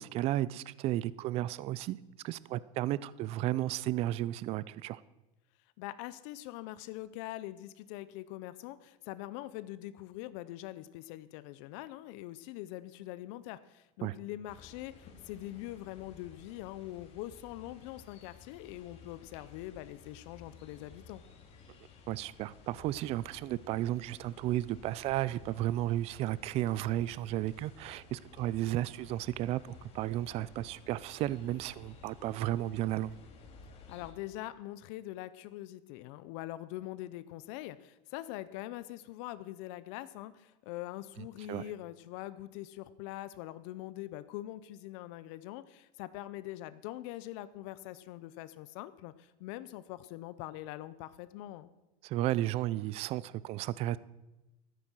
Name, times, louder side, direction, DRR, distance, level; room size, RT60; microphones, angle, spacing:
voice 1, 0.0-2.0 2.2-5.0 14.0-14.1 22.1-33.2 41.5-41.7 52.0-54.0, right 14 dB, 35° right, 19 dB, 0.4 m, -33 dB
voice 2, 5.8-21.2 33.9-51.7, left 15 dB, 65° left, 15 dB, 0.6 m, -43 dB
sound 1, 14.5-34.1, left 4 dB, 35° left, 2.1 m, -55 dB
12.5 x 9.7 x 6.2 m, 1.0 s
supercardioid pair, 155°, 17 cm